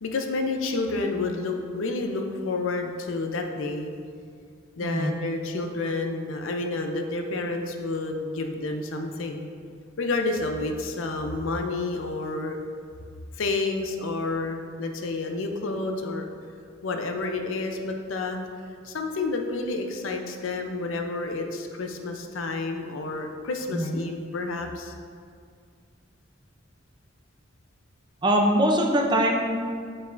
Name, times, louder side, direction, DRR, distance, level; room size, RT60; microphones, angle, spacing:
voice 1, 0.0-3.9 4.8-9.5 10.0-12.6 13.3-16.2 16.8-18.5 18.8-24.9, left 3 dB, 75° left, 4 dB, 0.6 m, -29 dB
voice 2, 4.8-5.1 23.7-24.0 28.2-29.6, equal, 20° right, 1 dB, 0.5 m, -22 dB
6.9 x 5.3 x 2.6 m, 2.2 s
head